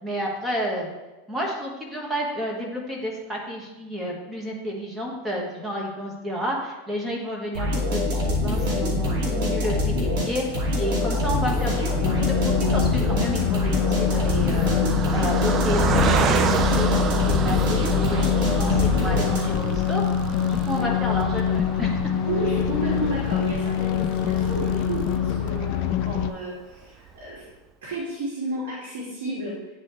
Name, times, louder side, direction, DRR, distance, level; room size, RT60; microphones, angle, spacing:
voice 1, 0.0-0.9 1.3-11.9 12.1-14.7 15.1-18.2 18.6-20.0 20.5-22.2, equal, 10° right, -1 dB, 1.6 m, -31 dB
sound 1, 7.5-19.7, left 2 dB, 60° right, 2.4 m, -25 dB
Car passing by, 10.7-26.2 26.7-26.8 27.1-27.3, right 6 dB, 30° right, 0.4 m, -31 dB
sound 2, 12.0-26.3, left 8 dB, 55° left, 0.3 m, -25 dB
voice 2, 22.2-27.5 27.8-29.5, right 2 dB, 75° right, -7 dB, 2.4 m, -32 dB
9.6 x 4.2 x 3.3 m, 1.1 s
supercardioid pair, 130°, 0 cm